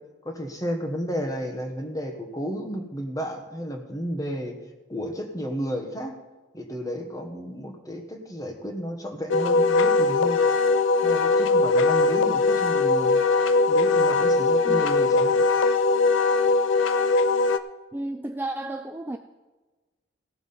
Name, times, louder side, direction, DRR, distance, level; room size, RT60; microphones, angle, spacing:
voice 1, 0.2-4.6 4.9-6.2 6.5-10.4 11.0-13.2 13.7-15.4, equal, 20° left, 3 dB, 1.3 m, -32 dB
Wind instrument woodwind instrument, 9.3-17.6, left 3 dB, 80° left, 0.5 m, -20 dB
voice 2, 17.9-19.2, right 2 dB, 10° right, 6 dB, 0.3 m, -32 dB
16.5 x 6.1 x 5.5 m, 1.2 s
head